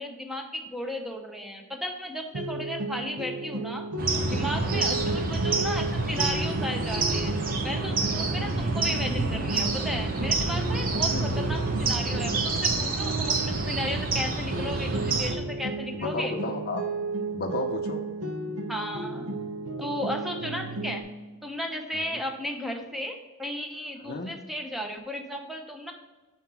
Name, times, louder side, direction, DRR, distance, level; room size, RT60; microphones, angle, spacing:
voice 1, 0.0-3.9 4.3-7.3 7.6-16.3 18.7-19.3 19.8-21.0 21.4-25.9, left 1 dB, ahead, 3 dB, 0.7 m, -34 dB
sound 1, 2.3-14.2 14.5-21.0, right 2 dB, 85° right, 0.8 m, -34 dB
sound 2, 4.0-15.4, right 3 dB, 40° right, 0.8 m, -28 dB
voice 2, 4.5-4.9 11.1-11.4 15.9-16.9 17.3-18.0 21.9-22.2 24.0-24.3, left 2 dB, 45° left, 3 dB, 0.6 m, -34 dB
5.7 x 4.4 x 4.5 m, 1.2 s
head